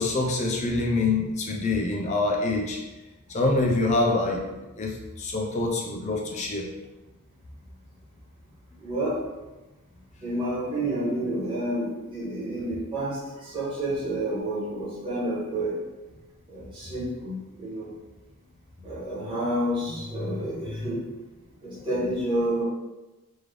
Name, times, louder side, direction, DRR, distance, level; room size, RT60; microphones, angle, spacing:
voice 1, 0.0-2.8 3.3-4.4 4.8-6.6, left 2 dB, 30° left, 0 dB, 0.5 m, -25 dB
voice 2, 8.8-9.2 10.2-15.8 16.5-17.9 18.8-21.1 21.6-22.6, right 1 dB, 20° right, -10 dB, 1.4 m, -29 dB
3.5 x 3.2 x 3.4 m, 1.1 s
head